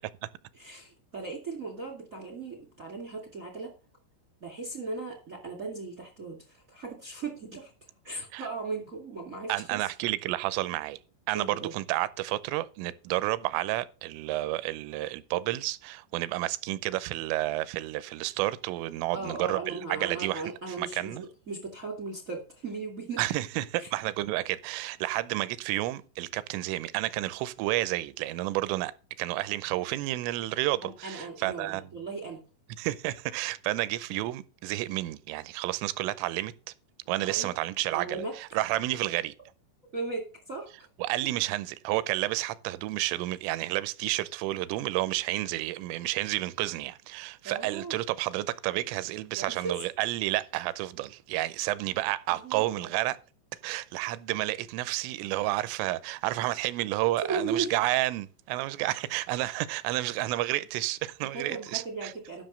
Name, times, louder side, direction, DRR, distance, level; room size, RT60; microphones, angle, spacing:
voice 1, 0.5-3.7 4.4-7.7 8.0-9.9 11.3-11.7 19.1-23.2 23.8-23.9 30.8-32.4 37.2-37.5 37.9-38.3 39.9-40.9 41.2-41.3 47.4-48.0 49.4-49.7 52.4-52.9 57.2-57.7 61.3-62.4, right 4 dB, 45° right, 1.0 m, -37 dB
voice 2, 9.5-11.0 11.3-20.4 20.8-21.2 23.2-28.9 29.2-31.9 32.8-36.5 37.1-39.3 41.0-53.2 53.6-62.1, right 17 dB, 85° right, 3.1 m, -30 dB
12.5 x 6.1 x 6.3 m
omnidirectional pair, 5.8 m